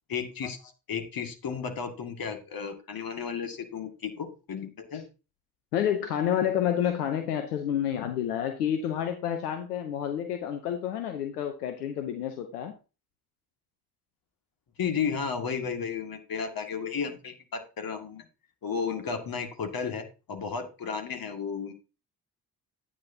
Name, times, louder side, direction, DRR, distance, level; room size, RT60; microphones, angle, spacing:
voice 1, 0.1-5.0 14.8-18.3 18.6-21.7, left 6 dB, 50° left, 2.1 m, -33 dB
voice 2, 5.7-12.7, left 9 dB, 85° left, 0.8 m, -29 dB
11.0 x 9.4 x 2.8 m
hypercardioid pair, 40°, 45 cm